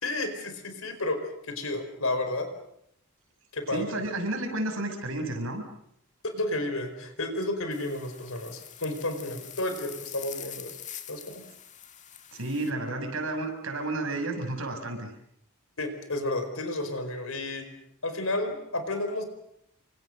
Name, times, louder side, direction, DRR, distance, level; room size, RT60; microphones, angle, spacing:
voice 1, 0.0-1.2 1.5-2.5 3.5-3.9 6.2-10.8 11.1-11.4 15.8-17.7 18.0-19.2, left 2 dB, 70° left, 8 dB, 4.8 m, -31 dB
voice 2, 3.7-5.6 12.3-15.1, right 2 dB, 70° right, 4 dB, 6.7 m, -31 dB
sound 1, 7.7-12.7, left 10 dB, 35° left, 2.1 m, -44 dB
29.5 x 25.5 x 6.6 m, 0.73 s
head